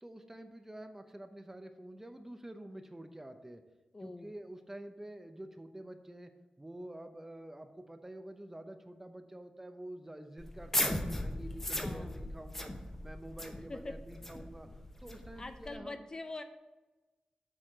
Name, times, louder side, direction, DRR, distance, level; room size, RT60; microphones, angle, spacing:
voice 1, 0.0-3.6 4.0-12.7 13.0-14.7 15.0-16.1, right 1 dB, 15° right, 7 dB, 0.7 m, -48 dB
voice 2, 3.9-4.3 11.8-12.2 13.7-13.9 15.4-16.4, left 2 dB, 30° left, 8 dB, 0.5 m, -43 dB
sound 1, 10.4-15.8, left 1 dB, 15° left, 0.8 m, -37 dB
7.6 x 4.2 x 6.4 m, 1.2 s
wide cardioid pair, 100°, 2 cm